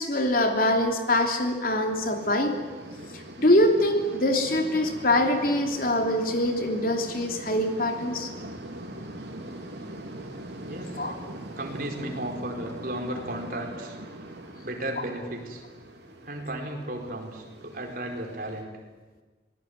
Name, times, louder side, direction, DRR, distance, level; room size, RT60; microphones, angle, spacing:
voice 1, 0.0-2.6 3.1-8.3 11.0-11.2, left 1 dB, 55° left, 4 dB, 3.1 m, -24 dB
sound 1, 1.8-18.6, right 1 dB, 75° right, 3.8 m, -42 dB
voice 2, 10.6-11.0 11.6-14.0 14.6-15.6 16.2-18.8, right 1 dB, 50° right, 2 dB, 4.6 m, -34 dB
26.0 x 18.5 x 9.5 m, 1.4 s
head